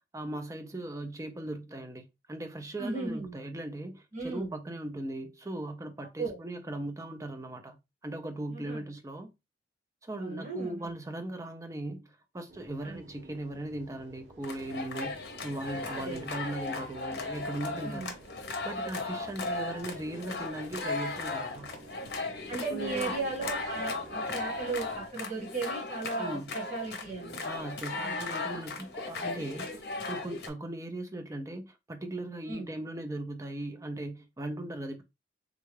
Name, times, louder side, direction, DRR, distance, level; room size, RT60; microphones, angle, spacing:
voice 1, 0.1-7.8 8.0-9.3 10.0-18.1 18.6-21.8 22.7-23.1 26.2-26.5 27.4-35.0, right 1 dB, 20° right, 0.4 m, -38 dB
voice 2, 2.8-3.4 4.1-4.5 6.2-6.4 8.5-8.8 10.2-10.9 12.8-13.0 15.9-16.2 17.8-18.1 22.5-27.5 27.9-28.3 32.5-32.7, right 3 dB, 40° right, 1.9 m, -36 dB
sound 1, 12.5-25.1, right 2 dB, 80° right, 0.8 m, -52 dB
sound 2, 14.4-30.5, left 3 dB, 65° left, 0.7 m, -37 dB
3.6 x 2.3 x 3.1 m
head